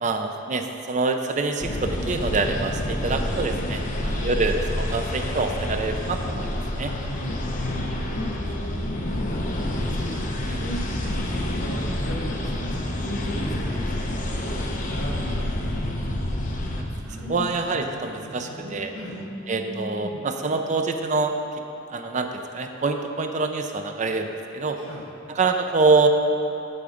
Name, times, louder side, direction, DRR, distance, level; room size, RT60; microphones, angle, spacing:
voice 1, 0.0-3.8 4.1-6.5 6.8-6.9 10.5-10.6 16.7-16.8 17.3-18.9 19.5-21.4 21.9-24.8 25.3-26.1, right 3 dB, 35° right, 5 dB, 0.5 m, -25 dB
sound 1, 1.6-16.8, left 1 dB, 40° left, 0.8 m, -28 dB
sound 2, 5.4-20.6, equal, 65° right, 1.3 m, -41 dB
voice 2, 6.8-8.3 9.0-16.3 16.9-17.6 18.9-19.1 24.8-25.0, left 1 dB, 75° left, -4 dB, 2.0 m, -37 dB
8.5 x 6.9 x 5.1 m, 3.0 s
head